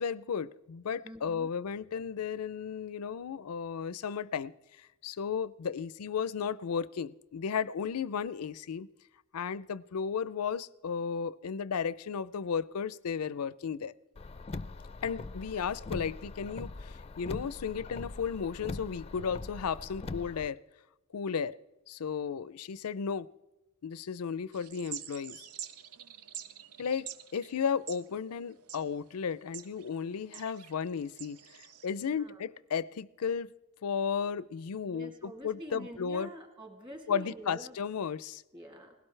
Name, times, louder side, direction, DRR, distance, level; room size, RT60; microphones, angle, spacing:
voice 1, 0.0-4.5 5.0-8.9 9.3-13.9 15.0-20.6 21.1-21.6 21.9-23.3 23.8-25.4 26.8-33.5 33.8-36.3 37.1-38.4, left 6 dB, 85° left, 19 dB, 0.5 m, -34 dB
voice 2, 1.0-1.5 32.0-32.4 34.9-37.8 38.5-39.0, equal, 25° right, 2 dB, 2.3 m, -46 dB
Car, 14.2-20.5, left 3 dB, 25° left, 0.4 m, -42 dB
sound 1, 24.5-31.9, right 10 dB, 85° right, 0.7 m, -47 dB
19.5 x 17.0 x 3.3 m, 0.99 s
head